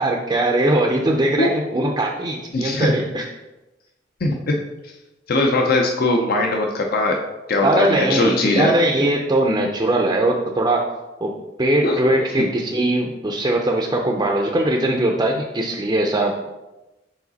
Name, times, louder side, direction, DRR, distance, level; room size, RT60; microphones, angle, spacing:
voice 1, 0.0-3.2 7.6-10.9 11.2-16.5, right 1 dB, 20° right, 0 dB, 0.5 m, -20 dB
voice 2, 2.5-2.9 4.2-4.6 5.3-7.2 7.5-8.7 11.8-12.0 12.4-12.5, left 2 dB, 55° left, 2 dB, 0.6 m, -20 dB
4.9 x 4.8 x 4.0 m, 1.0 s
head